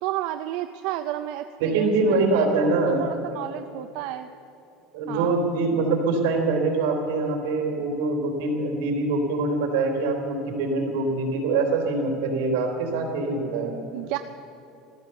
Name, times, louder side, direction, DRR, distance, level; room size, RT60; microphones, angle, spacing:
voice 1, 0.0-4.3 5.1-5.4 13.9-14.2, right 13 dB, 60° right, 8 dB, 0.5 m, -32 dB
voice 2, 1.6-3.1 4.9-13.7, right 3 dB, 85° right, 2 dB, 3.3 m, -24 dB
15.0 x 13.5 x 6.9 m, 2.7 s
cardioid pair, 175°, 0 cm